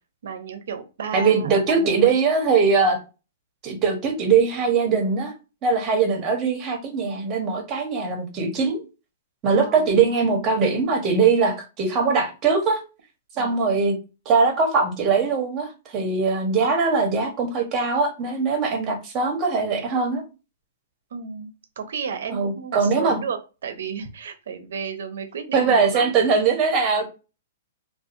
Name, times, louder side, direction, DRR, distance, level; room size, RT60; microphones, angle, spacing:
voice 1, 0.2-2.2 9.6-9.9 13.3-13.7 21.1-26.1 27.0-27.1, right 6 dB, 75° right, 0.6 m, -33 dB
voice 2, 1.1-3.0 3.6-5.3 5.6-8.8 9.4-12.8 13.4-14.0 14.3-20.2 22.3-23.2 25.5-27.0, right 5 dB, 30° right, 0.9 m, -21 dB
2.6 x 2.4 x 2.5 m
hypercardioid pair, 135°, 0 cm